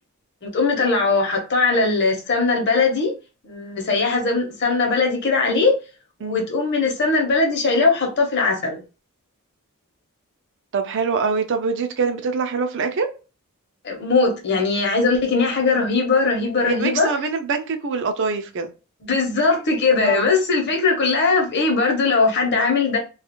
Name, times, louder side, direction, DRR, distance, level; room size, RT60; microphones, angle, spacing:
voice 1, 0.4-3.1 3.4-5.8 6.2-8.8 13.8-17.1 19.1-23.0, left 3 dB, 50° left, 0.8 m, -20 dB
voice 2, 10.7-13.1 16.6-18.7 20.0-20.3, right 5 dB, 55° right, 0.4 m, -24 dB
2.4 x 2.4 x 2.9 m
head